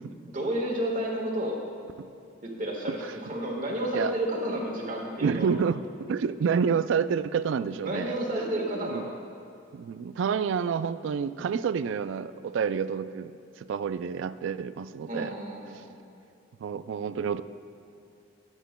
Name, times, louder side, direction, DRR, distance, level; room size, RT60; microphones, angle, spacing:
voice 1, 0.3-1.6 2.4-5.5 7.8-9.1 15.1-16.0, right 1 dB, 40° right, -1 dB, 1.5 m, -31 dB
voice 2, 5.2-8.2 8.8-9.0 9.7-13.3 13.6-15.3 16.6-17.4, right 6 dB, 65° right, 14 dB, 0.3 m, -28 dB
21.0 x 8.1 x 2.2 m, 2.5 s
head